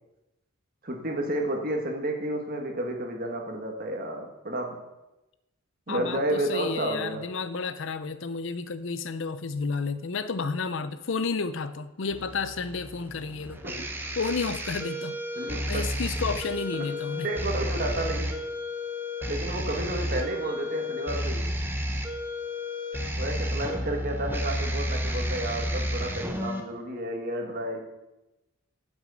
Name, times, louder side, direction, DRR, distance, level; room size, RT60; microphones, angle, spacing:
voice 1, 0.8-4.8 5.9-7.2 13.6-13.8 15.4-15.8 17.0-18.4 19.3-21.5 23.2-27.8, right 1 dB, 40° right, 2 dB, 1.7 m, -31 dB
voice 2, 5.9-13.6 14.2-17.3, left 4 dB, 60° left, 12 dB, 0.6 m, -31 dB
sound 1, 12.1-26.6, equal, 10° right, 0.9 m, -32 dB
9.0 x 6.2 x 7.7 m, 0.98 s
head